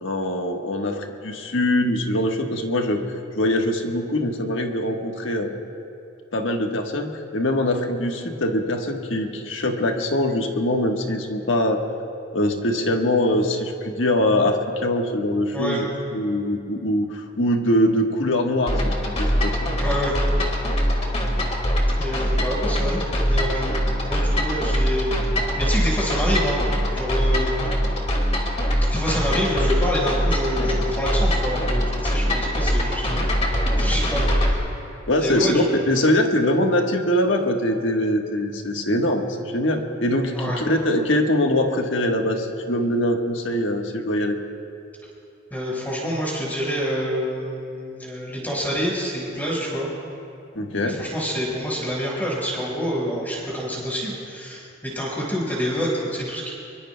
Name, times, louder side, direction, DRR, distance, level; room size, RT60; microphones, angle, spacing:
voice 1, 0.0-3.0 3.3-5.5 6.3-11.8 12.3-15.9 16.1-19.6 35.1-44.4 50.5-51.0, left 1 dB, 70° left, 3 dB, 1.4 m, -23 dB
sound 1, 18.7-34.5, equal, 35° left, 2.0 m, -22 dB
voice 2, 19.8-20.2 21.9-25.1 25.6-26.7 26.9-27.5 28.9-34.6 35.2-35.7 40.3-40.6 45.5-49.9 50.9-56.5, equal, 10° left, -4 dB, 4.8 m, -27 dB
24.5 x 23.0 x 2.2 m, 2.6 s
head